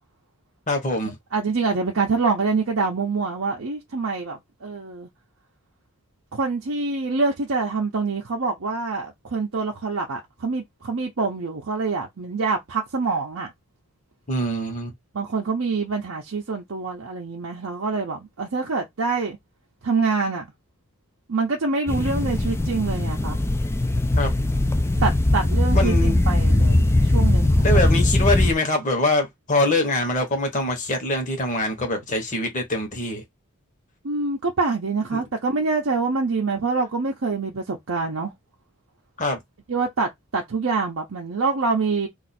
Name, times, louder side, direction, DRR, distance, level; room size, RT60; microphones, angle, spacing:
voice 1, 0.7-1.2 14.3-14.9 24.2-24.3 25.7-26.2 27.6-33.2 35.1-35.2 39.2-39.4, left 1 dB, 35° left, 1.0 m, -24 dB
voice 2, 1.3-5.1 6.3-13.5 15.1-19.4 19.8-20.5 21.3-23.4 25.0-28.0 34.0-38.3 39.7-42.1, right 4 dB, 65° right, 0.6 m, -25 dB
sound 1, 21.9-28.5, left 1 dB, 10° left, 0.3 m, -20 dB
2.5 x 2.4 x 4.1 m
head